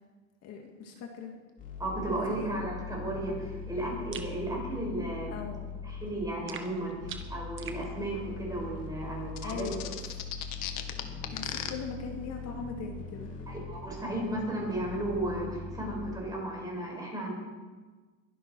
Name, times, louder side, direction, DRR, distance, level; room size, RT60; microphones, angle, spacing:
voice 1, 0.4-1.3 2.1-2.5 5.3-5.7 9.4-10.2 11.3-13.3, left 5 dB, 50° left, 2 dB, 2.1 m, -40 dB
sound 1, 1.6-16.1, left 4 dB, 25° left, 3.3 m, -42 dB
voice 2, 1.8-5.4 5.8-9.7 13.5-17.3, right 1 dB, 10° right, -2 dB, 5.4 m, -34 dB
sound 2, 4.1-4.4 6.5-7.8, right 7 dB, 35° right, 1.5 m, -43 dB
sound 3, 9.4-11.7, left 13 dB, 75° left, 1.6 m, -36 dB
22.0 x 11.5 x 4.6 m, 1.3 s
cardioid pair, 150°, 33 cm